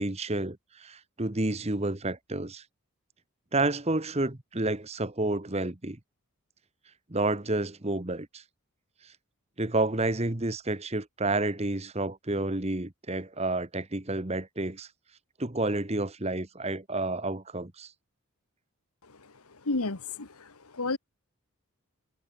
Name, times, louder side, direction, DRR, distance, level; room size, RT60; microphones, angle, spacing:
voice 1, 0.0-2.6 3.5-6.0 7.1-8.4 9.6-14.9 15.4-17.9, right 2 dB, 30° right, 1.2 m, -30 dB
voice 2, 19.6-21.0, left 3 dB, 85° left, 1.6 m, -31 dB
head